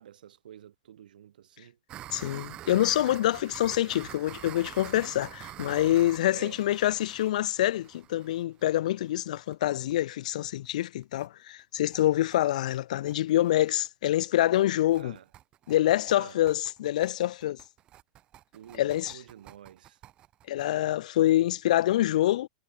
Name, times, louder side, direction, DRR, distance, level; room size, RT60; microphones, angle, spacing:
voice 1, 0.0-1.8 6.3-6.6 15.0-15.3 16.1-16.4 18.5-20.0, right 10 dB, 85° right, 6.5 m, -49 dB
sound 1, 1.9-9.5 9.9-10.0 10.3-10.4 10.7-10.8 11.0-11.3 11.6-20.7, right 12 dB, 20° right, 3.0 m, -47 dB
voice 2, 2.1-15.2 15.7-17.6 18.8-19.2 20.5-22.5, left 13 dB, 60° left, 0.5 m, -26 dB
supercardioid pair, 175°, 5 cm